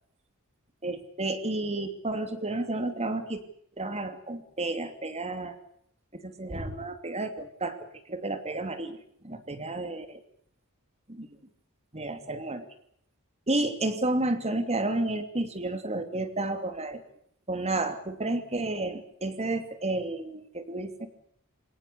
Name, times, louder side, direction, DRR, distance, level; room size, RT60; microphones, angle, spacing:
voice 1, 0.8-3.4 3.8-5.6 6.1-9.0 9.2-10.2 11.1-11.3 11.9-12.7 13.5-17.0 17.5-21.1, right 2 dB, 30° right, 8 dB, 2.8 m, -31 dB
27.5 x 18.0 x 8.4 m, 0.68 s
head